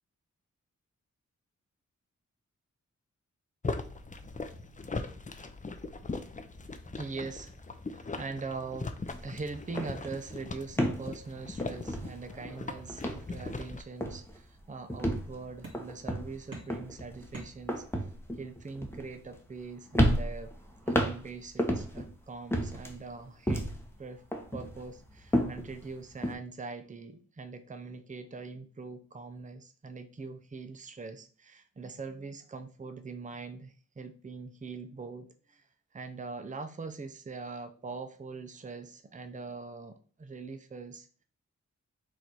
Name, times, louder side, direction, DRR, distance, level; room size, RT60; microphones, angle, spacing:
sound 1, 3.6-13.8, left 3 dB, 25° left, 0.6 m, -40 dB
voice 1, 7.0-17.8 18.4-20.5 20.8-23.7 24.0-24.3 24.5-35.6 35.9-41.2, right 4 dB, 25° right, 8 dB, 0.6 m, -42 dB
sound 2, 9.1-9.3 9.6-12.6 12.9-13.7 14.0-14.4 14.9-19.6 19.9-22.1 22.5-23.9 24.3-26.3, equal, 10° left, 1.0 m, -32 dB
sound 3, 12.3-13.6 14.0-14.7 15.6-16.1 16.5-18.1, right 3 dB, 50° right, 2.2 m, -50 dB
4.1 x 2.7 x 4.6 m, 0.39 s
cardioid pair, 50°, 30 cm